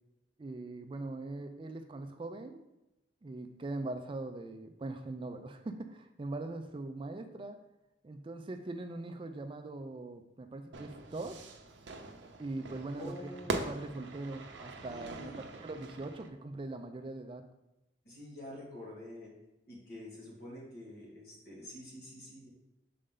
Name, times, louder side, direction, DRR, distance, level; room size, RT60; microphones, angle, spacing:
voice 1, 0.4-2.6 3.2-7.6 8.0-11.4 12.4-17.5, right 2 dB, 30° right, 7 dB, 0.4 m, -41 dB
Fire / Fireworks, 10.7-16.3, right 3 dB, 85° right, 0.6 m, -42 dB
voice 2, 12.9-13.6 14.9-15.4 18.0-19.3 19.7-22.5, left 1 dB, 55° left, -4 dB, 2.1 m, -47 dB
6.6 x 4.2 x 3.7 m, 0.95 s
head